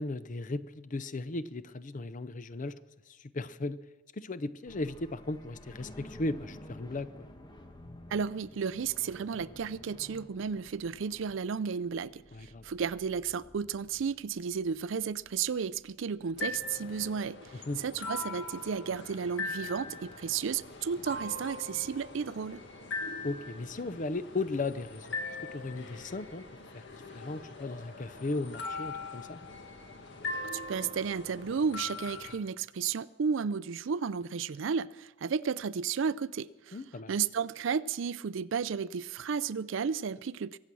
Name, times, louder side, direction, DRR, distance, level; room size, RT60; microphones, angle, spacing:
voice 1, 0.0-2.8 3.1-3.8 4.1-7.1 12.3-12.6 17.7-17.8 23.2-25.2 25.5-26.4 26.7-29.4 36.7-37.1, left 2 dB, 40° left, 15 dB, 0.6 m, -36 dB
sound 1, 4.7-17.1, left 1 dB, 20° left, 1.3 m, -52 dB
voice 2, 8.1-22.6 30.5-36.8 37.1-40.6, right 6 dB, 65° right, 17 dB, 0.4 m, -33 dB
sound 2, 16.4-32.4, left 3 dB, 60° left, 1.7 m, -41 dB
23.5 x 8.3 x 6.2 m, 1.1 s
head